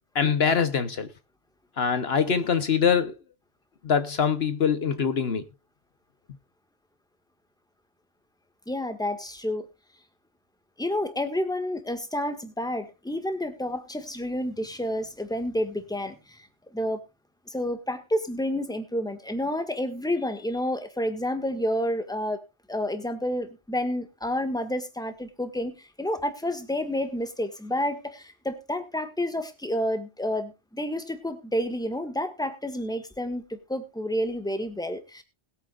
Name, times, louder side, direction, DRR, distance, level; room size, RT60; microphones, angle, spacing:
voice 1, 0.1-1.1 1.8-3.1 3.8-5.5, left 6 dB, 65° left, 1.2 m, -23 dB
voice 2, 8.7-9.7 10.8-17.0 17.5-22.4 22.7-35.2, left 1 dB, 5° left, 1.6 m, -30 dB
20.5 x 9.0 x 2.4 m
omnidirectional pair, 1.2 m